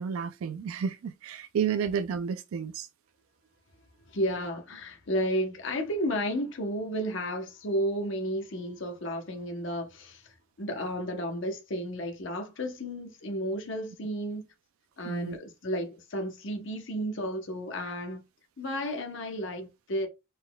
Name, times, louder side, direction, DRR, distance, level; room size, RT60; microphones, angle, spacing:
voice 1, 0.0-2.9 15.0-15.4, right 7 dB, 85° right, 0.3 m, -31 dB
voice 2, 4.1-14.4 15.0-18.2 18.6-20.1, equal, 65° left, 0.8 m, -32 dB
4.0 x 4.0 x 2.2 m
head